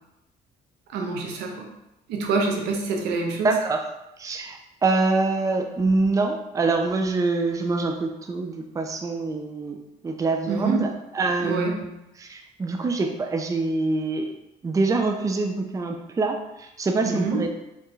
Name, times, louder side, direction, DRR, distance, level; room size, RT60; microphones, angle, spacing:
voice 1, 0.9-1.7 2.1-3.5 10.5-10.9 11.4-11.7 17.0-17.4, right 3 dB, 90° right, 1 dB, 0.9 m, -26 dB
voice 2, 3.4-3.8 4.2-10.9 11.1-11.9 12.2-14.3 14.6-17.5, right 3 dB, 20° right, 4 dB, 0.5 m, -25 dB
4.6 x 3.5 x 3.2 m, 0.89 s
cardioid pair, 110°, 17 cm